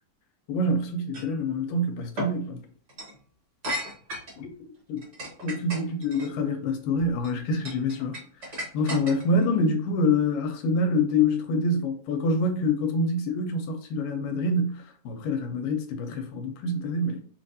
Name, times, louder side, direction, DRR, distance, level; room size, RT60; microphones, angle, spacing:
voice 1, 0.5-2.6 4.4-4.5 4.9-5.0 5.4-8.2 8.5-17.2, left 2 dB, 80° left, 2.3 m, -26 dB
sound 1, 1.1-1.3 2.2-2.3 2.9-3.1 3.6-4.4 5.0-6.3 7.0-7.3 7.6-9.4, equal, 75° right, 0.6 m, -34 dB
5.9 x 2.5 x 2.7 m
omnidirectional pair, 3.9 m